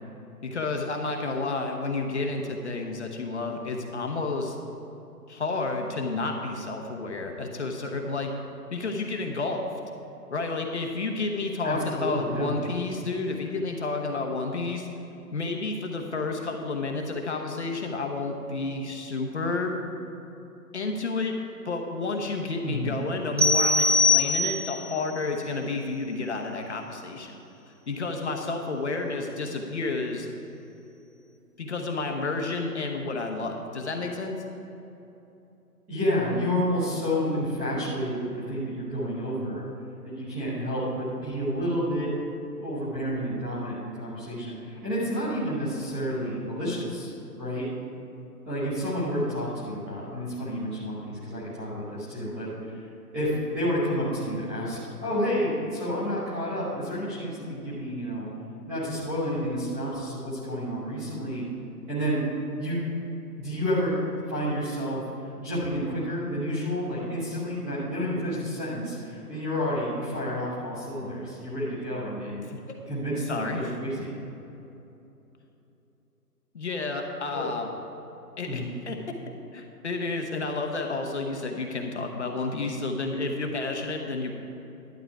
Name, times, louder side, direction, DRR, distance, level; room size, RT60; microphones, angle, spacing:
voice 1, 0.4-4.6 5.3-8.3 8.7-9.7 10.3-14.9 15.3-19.8 20.7-21.3 21.6-27.3 27.9-30.3 31.6-34.4 72.5-72.6 72.8-73.0 73.3-73.7 76.5-77.7 78.4-79.0 79.5-84.3, left 3 dB, 45° left, 2 dB, 1.0 m, -30 dB
voice 2, 11.6-12.5 22.6-23.0 35.9-39.6 40.0-42.1 42.6-47.1 47.4-47.7 48.4-52.8 53.1-58.3 58.7-61.4 61.9-62.2 62.6-62.8 63.4-64.0 64.3-65.0 65.4-72.5 72.9-74.2 77.3-77.5 78.4-78.7, equal, 5° right, -13 dB, 0.9 m, -30 dB
sound 1, 23.4-24.9, left 3 dB, 85° right, 1.8 m, -22 dB
11.5 x 7.9 x 4.7 m, 2.9 s
figure-of-eight pair, 155°, 48 cm